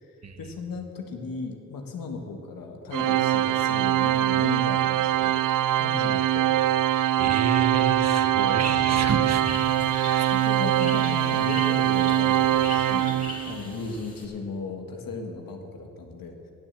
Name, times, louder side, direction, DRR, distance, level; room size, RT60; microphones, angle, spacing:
voice 1, 0.0-5.5 5.8-6.5 9.8-13.1 13.5-16.5, left 4 dB, 80° left, 3 dB, 1.7 m, -36 dB
Organ, 2.9-13.7, right 12 dB, 70° right, 0.5 m, -23 dB
voice 2, 7.2-10.3, right 5 dB, 50° right, 7 dB, 1.3 m, -30 dB
sound 1, 9.2-14.2, left 2 dB, 25° left, 2.9 m, -40 dB
17.0 x 7.4 x 7.5 m, 3.0 s
cardioid pair, 60°, 34 cm